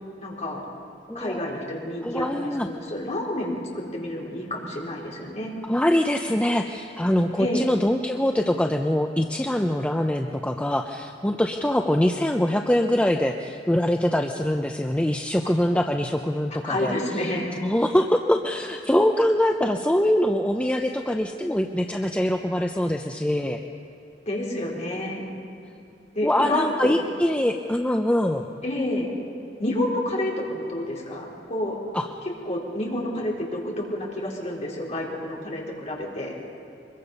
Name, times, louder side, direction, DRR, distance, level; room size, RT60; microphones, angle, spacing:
voice 1, 0.2-0.7 1.1-5.5 7.4-7.7 16.6-17.5 24.3-25.2 26.1-26.9 28.6-29.1 29.6-31.8 32.5-36.3, left 1 dB, 40° left, -3 dB, 4.0 m, -29 dB
voice 2, 1.1-1.4 2.0-2.7 5.7-16.9 17.6-23.6 26.2-28.5 31.9-32.1, left 1 dB, 5° left, 4 dB, 0.6 m, -23 dB
24.0 x 22.0 x 5.4 m, 2.7 s
head